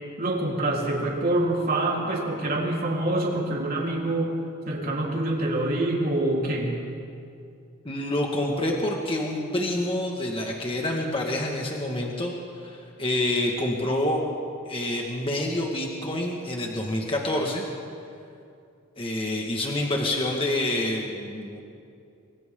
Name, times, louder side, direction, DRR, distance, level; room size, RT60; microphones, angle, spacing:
voice 1, 0.2-4.3 4.7-6.8, right 1 dB, 45° right, -3 dB, 3.9 m, -26 dB
voice 2, 7.9-12.3 12.6-14.2 14.7-17.6 19.0-21.6, left 1 dB, 25° left, 0 dB, 1.8 m, -27 dB
29.5 x 22.5 x 3.9 m, 2.5 s
head